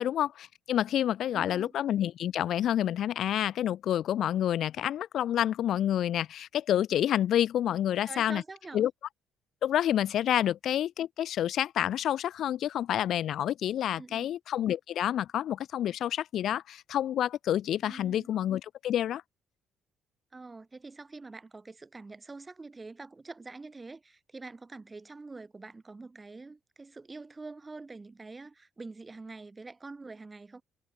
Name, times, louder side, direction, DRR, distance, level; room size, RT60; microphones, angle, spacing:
voice 1, 0.0-8.4 8.7-8.9 9.6-19.2, left 11 dB, 60° left, 1.5 m, -28 dB
voice 2, 1.3-1.7 8.0-8.8 10.3-10.4 14.0-14.3 17.8-18.4 20.3-30.6, right 3 dB, 20° right, 6.6 m, -45 dB
cardioid pair, 125°, 0 cm